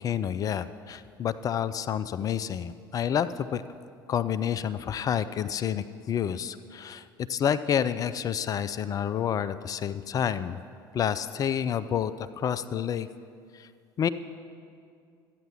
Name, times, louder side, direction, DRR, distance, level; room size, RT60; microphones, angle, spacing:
voice 1, 0.0-3.6 4.1-7.0 7.3-10.6 10.9-13.1 13.6-13.7 14.0-14.1, left 9 dB, 30° left, 14 dB, 0.4 m, -29 dB
13.0 x 9.1 x 4.6 m, 2.4 s
figure-of-eight pair, 60°, 11 cm